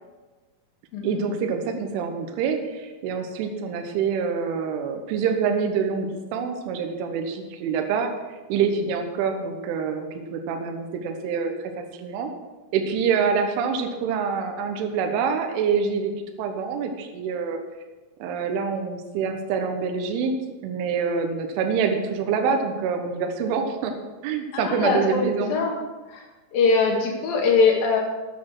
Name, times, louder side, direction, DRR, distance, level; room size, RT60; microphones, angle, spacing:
voice 1, 1.0-8.1 8.5-12.3 12.7-16.1 16.4-17.6 18.2-20.3 20.6-23.9 24.2-25.5, right 6 dB, 75° right, 4 dB, 3.4 m, -26 dB
voice 2, 24.5-25.7 26.1-26.2 26.5-28.0, left 4 dB, 55° left, 0 dB, 2.9 m, -22 dB
12.5 x 9.7 x 4.8 m, 1.2 s
omnidirectional pair, 5.9 m